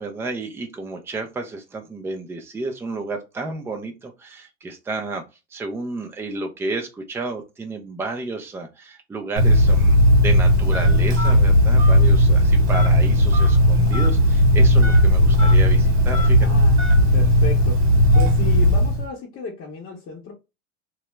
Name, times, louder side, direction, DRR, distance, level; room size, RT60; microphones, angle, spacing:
voice 1, 0.0-5.2 5.5-16.5, right 3 dB, 5° right, 0.4 m, -31 dB
Telephone, 9.4-19.1, equal, 80° right, 1.1 m, -16 dB
voice 2, 16.4-17.9 18.1-20.3, left 4 dB, 35° left, 0.8 m, -34 dB
2.2 x 2.0 x 3.0 m
hypercardioid pair, 95°, 38 cm